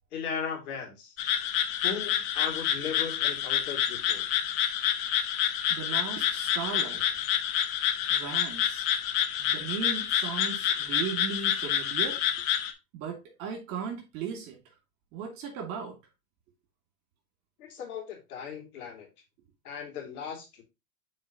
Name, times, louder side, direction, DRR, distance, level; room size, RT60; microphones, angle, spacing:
voice 1, 0.1-1.1 1.8-4.2 17.6-19.1 19.6-20.6, left 6 dB, 70° left, 2.9 m, -37 dB
sound 1, 1.2-12.7, left 10 dB, 45° left, 1.1 m, -28 dB
voice 2, 5.7-7.2 8.1-8.9 9.4-12.2 12.9-14.6 15.1-16.0, right 7 dB, 50° right, 2.5 m, -37 dB
8.4 x 4.4 x 3.0 m
hypercardioid pair, 115°, 46 cm